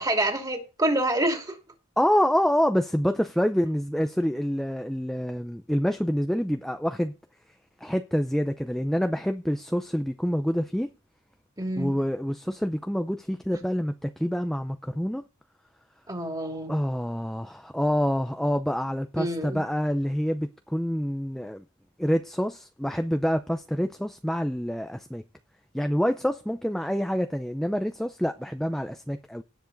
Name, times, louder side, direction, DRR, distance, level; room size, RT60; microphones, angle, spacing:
voice 1, 0.0-1.6 11.6-12.0 16.1-16.7 19.2-19.6, right 1 dB, 15° right, 2.7 m, -27 dB
voice 2, 2.0-7.1 7.8-10.9 11.8-15.2 16.7-21.6 22.0-25.2 25.7-29.4, equal, ahead, 0.5 m, -27 dB
18.0 x 7.2 x 4.0 m
head